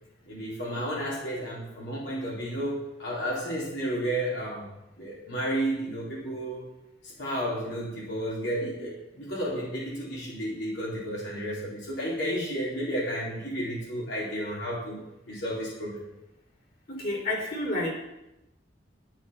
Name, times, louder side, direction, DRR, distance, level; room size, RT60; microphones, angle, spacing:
voice 1, 0.3-4.7 5.0-6.7 7.0-16.0, equal, 75° left, -6 dB, 4.1 m, -32 dB
voice 2, 16.9-17.9, left 1 dB, 50° left, -2 dB, 3.9 m, -29 dB
12.0 x 10.5 x 5.8 m, 0.93 s
head